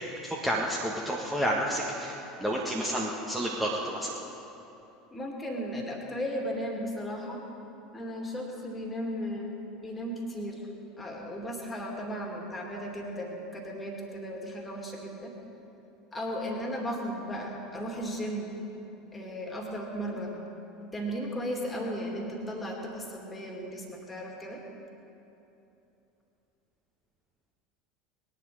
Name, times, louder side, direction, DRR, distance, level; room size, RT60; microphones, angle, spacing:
voice 1, 0.2-4.2, equal, 5° right, -4 dB, 1.7 m, -30 dB
voice 2, 5.1-7.4 7.9-10.7 11.0-15.3 16.1-18.5 19.1-20.4 20.9-24.6, equal, 15° left, 0 dB, 2.8 m, -35 dB
20.5 x 11.0 x 5.1 m, 3.0 s
figure-of-eight pair, 70°, 0 cm